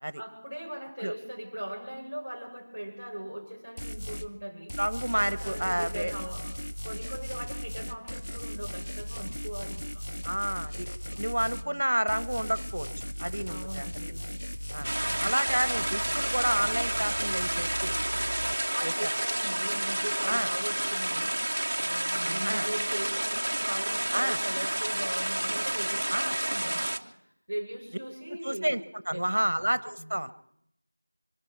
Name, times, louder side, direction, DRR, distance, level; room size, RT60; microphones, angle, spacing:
voice 1, 0.1-4.7 5.1-10.0 11.1-11.2 11.5-11.8 13.5-14.2 14.9-15.4 18.7-21.4 21.8-27.0 27.5-28.8 29.1-29.7 30.0-30.2, equal, 5° left, -14 dB, 6.0 m, -39 dB
sound 1, 3.8-4.3 4.7-11.7 12.1-18.5, equal, 70° left, 1.3 m, -37 dB
voice 2, 4.8-6.1 10.2-10.9 11.2-14.2 14.7-14.9 15.2-18.3 18.8-19.1 20.3-20.5 22.2-22.7 24.1-24.4 26.1-26.4 28.3-28.8 29.1-30.3, right 1 dB, 50° right, 15 dB, 0.9 m, -30 dB
sound 2, 14.8-27.0, right 1 dB, 25° right, 0.6 m, -30 dB
24.5 x 11.5 x 4.7 m, 0.73 s
figure-of-eight pair, 180°, 0 cm